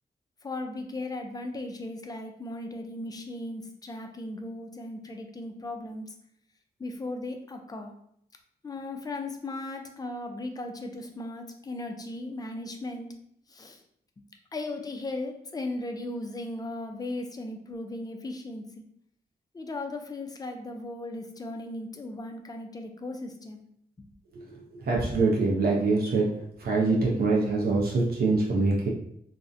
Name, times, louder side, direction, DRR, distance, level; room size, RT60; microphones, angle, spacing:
voice 1, 0.4-6.1 6.8-7.9 8.6-13.1 13.5-13.8 14.5-18.8 19.5-23.6 24.0-24.1, left 2 dB, 25° left, 4 dB, 0.3 m, -37 dB
voice 2, 24.8-26.3 26.6-28.9, right 3 dB, 70° right, -3 dB, 0.5 m, -24 dB
2.5 x 2.0 x 2.5 m, 0.70 s
wide cardioid pair, 95°, 17 cm